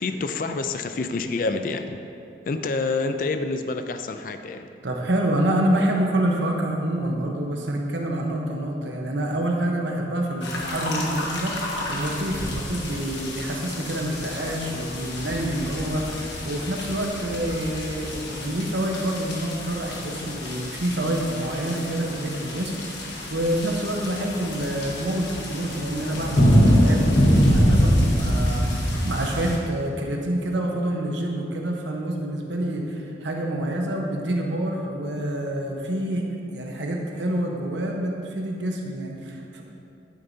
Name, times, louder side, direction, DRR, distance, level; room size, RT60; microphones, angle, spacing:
voice 1, 0.0-2.0 2.5-4.7, left 3 dB, 50° left, 7 dB, 0.4 m, -27 dB
voice 2, 4.8-22.7 23.0-39.6, right 1 dB, 85° right, 0 dB, 1.0 m, -27 dB
sound 1, 10.4-29.6, equal, 75° left, 1.4 m, -25 dB
10.5 x 8.8 x 2.7 m, 2.6 s
head